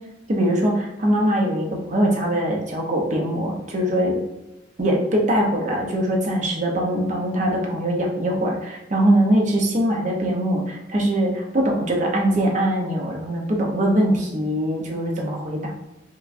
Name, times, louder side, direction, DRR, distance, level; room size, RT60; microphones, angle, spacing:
voice 1, 0.3-4.2 4.8-15.7, right 1 dB, 40° right, 0 dB, 0.6 m, -22 dB
4.6 x 2.2 x 2.5 m, 0.95 s
head